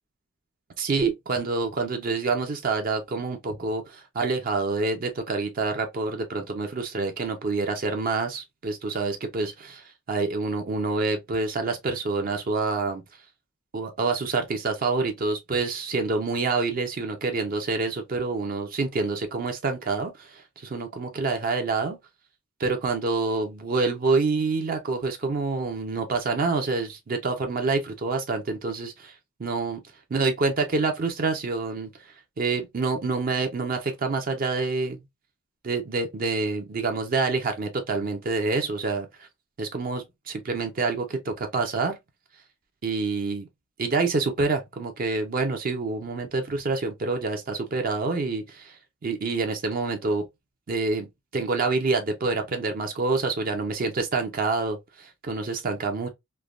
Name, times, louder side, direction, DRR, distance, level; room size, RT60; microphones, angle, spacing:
voice 1, 0.8-13.0 13.7-22.0 22.6-29.1 29.4-29.8 30.1-31.9 32.4-35.0 35.6-39.1 39.6-42.0 42.8-43.5 43.8-48.8 49.0-50.2 50.7-51.1 51.3-56.1, right 3 dB, 45° right, 0.5 m, -27 dB
3.2 x 2.1 x 2.4 m
head